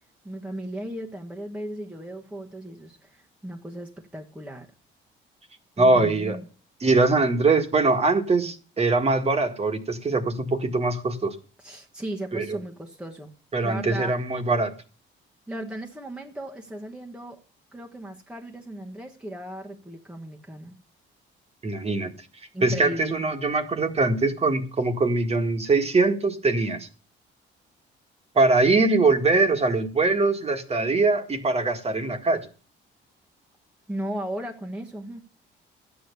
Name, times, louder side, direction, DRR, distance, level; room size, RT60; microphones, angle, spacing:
voice 1, 0.2-4.7 5.8-6.5 11.6-13.3 13.6-14.1 15.5-17.4 17.7-20.8 22.5-23.2 33.9-35.2, right 1 dB, 5° right, 1.3 m, -36 dB
voice 2, 5.8-6.4 6.8-11.3 12.3-12.6 13.5-14.7 21.6-22.1 22.6-26.9 28.3-32.5, right 3 dB, 30° right, 1.7 m, -22 dB
12.0 x 8.6 x 6.8 m
cardioid pair, 115°, 21 cm